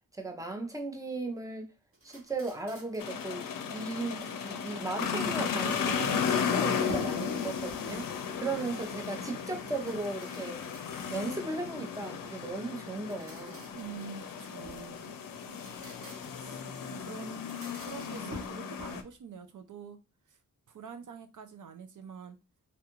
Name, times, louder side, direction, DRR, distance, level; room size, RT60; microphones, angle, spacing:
voice 1, 0.1-1.7 2.0-3.5 3.7-8.1 8.4-10.7 11.1-13.7 16.9-17.0, right 2 dB, 10° right, 0.6 m, -36 dB
sound 1, 1.9-3.2 5.6-7.2 7.6-8.2 9.6-11.3 12.9-14.9 15.4-16.5 17.3-19.2, equal, 40° right, 1.0 m, -51 dB
sound 2, 3.0-19.0, left 6 dB, 80° left, 0.5 m, -35 dB
voice 2, 13.8-15.1 16.3-16.6 17.0-17.4 17.8-20.0 20.3-20.4 20.7-22.4, right 6 dB, 65° right, 0.5 m, -46 dB
3.4 x 2.4 x 2.9 m
wide cardioid pair, 105°, 33 cm